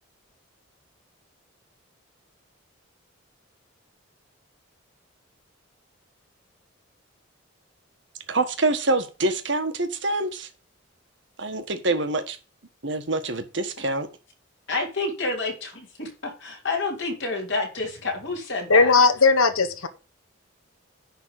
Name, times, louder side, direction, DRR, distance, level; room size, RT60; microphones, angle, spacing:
voice 1, 8.3-10.5 11.4-12.4 12.8-14.1, right 2 dB, 60° right, 1.5 m, -25 dB
voice 2, 14.7-18.9, left 3 dB, 55° left, 3.8 m, -29 dB
voice 3, 18.7-19.9, left 4 dB, 85° left, 1.2 m, -17 dB
10.5 x 4.0 x 7.6 m
head